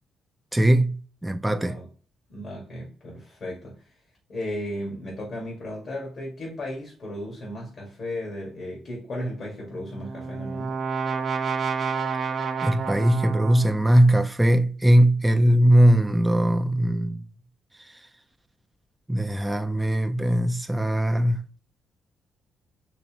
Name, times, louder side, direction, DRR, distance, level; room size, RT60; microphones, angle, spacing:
voice 1, 0.5-1.8 12.6-17.2 19.1-21.5, right 1 dB, 5° right, 0.4 m, -20 dB
voice 2, 1.6-1.9 2.3-4.0 4.3-10.8, left 1 dB, 55° left, 1.8 m, -35 dB
Brass instrument, 9.8-13.9, right 5 dB, 50° right, 0.6 m, -29 dB
4.0 x 3.1 x 2.9 m
cardioid pair, 90°, 0 cm